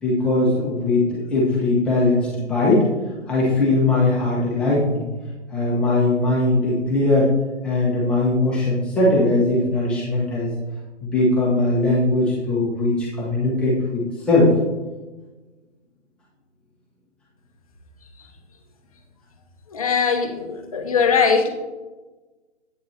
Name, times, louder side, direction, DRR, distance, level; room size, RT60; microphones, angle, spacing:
voice 1, 0.0-2.9 3.3-5.1 5.5-7.3 7.6-10.5 11.0-14.0 14.3-14.5, left 2 dB, 5° left, -7 dB, 1.0 m, -20 dB
voice 2, 19.7-21.5, left 5 dB, 30° left, 4 dB, 0.8 m, -20 dB
10.5 x 8.7 x 2.8 m, 1.2 s
figure-of-eight pair, 150°, 37 cm